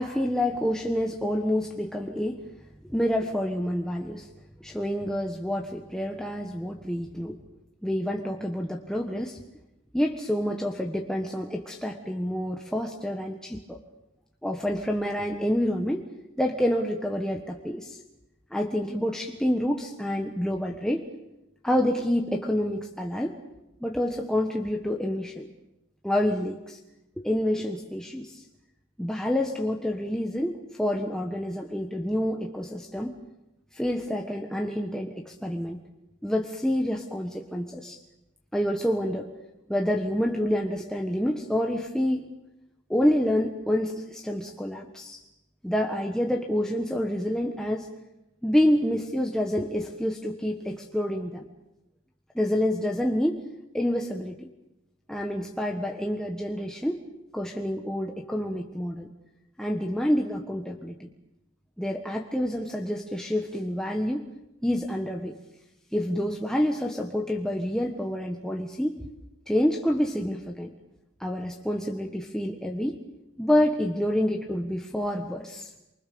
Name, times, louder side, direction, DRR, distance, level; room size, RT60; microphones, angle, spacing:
voice 1, 0.0-2.4 2.8-4.3 4.6-7.4 7.8-9.4 9.9-13.8 14.4-16.0 16.4-18.0 18.5-21.0 21.6-23.4 23.8-25.5 26.0-26.8 27.2-28.4 29.0-33.1 33.7-35.8 36.2-38.0 38.5-39.3 39.7-42.3 42.9-45.2 45.6-47.9 48.4-51.4 52.3-53.4 53.7-54.5 55.1-57.0 57.3-59.1 59.6-61.1 61.8-64.3 64.6-65.3 65.9-69.0 69.5-70.7 71.2-73.0 73.4-75.7, equal, 5° left, 1 dB, 1.4 m, -28 dB
28.5 x 24.0 x 7.0 m, 0.93 s
head